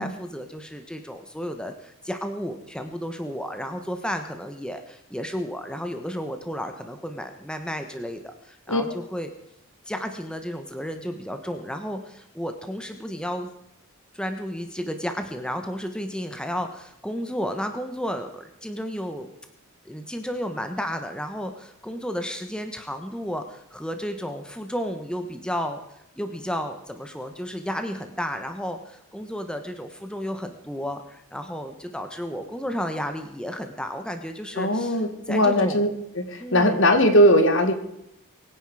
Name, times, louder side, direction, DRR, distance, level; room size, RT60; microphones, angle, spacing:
voice 1, 0.0-9.3 9.9-13.5 14.1-19.3 19.8-25.8 26.2-35.9 36.4-36.8, equal, 5° left, 6 dB, 1.2 m, -32 dB
voice 2, 34.6-35.9 36.2-37.7, equal, 60° left, 7 dB, 2.0 m, -19 dB
23.5 x 10.0 x 5.0 m, 0.81 s
head